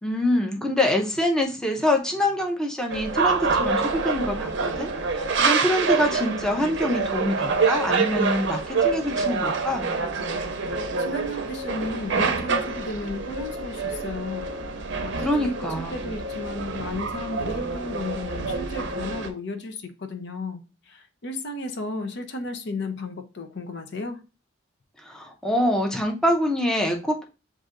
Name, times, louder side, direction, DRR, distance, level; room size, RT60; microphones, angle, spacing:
voice 1, 0.0-9.9 15.2-16.1 25.0-27.2, left 1 dB, 5° left, 0.6 m, -25 dB
sound 1, 2.9-19.3, right 4 dB, 65° right, 0.6 m, -26 dB
voice 2, 11.0-14.5 15.0-24.2, left 2 dB, 65° left, 0.7 m, -34 dB
7.5 x 2.6 x 2.5 m
head